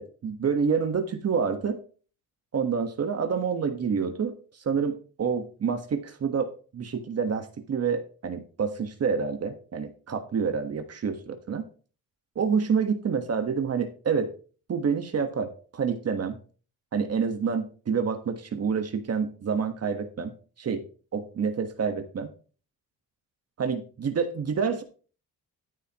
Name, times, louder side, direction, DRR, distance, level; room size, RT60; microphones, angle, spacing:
voice 1, 0.0-1.8 2.5-11.6 12.3-14.3 14.7-16.4 16.9-20.3 20.6-20.8 21.1-22.3 23.6-24.8, right 6 dB, 45° right, 7 dB, 1.5 m, -28 dB
14.0 x 8.3 x 3.0 m, 0.37 s
cardioid pair, 125°, 35 cm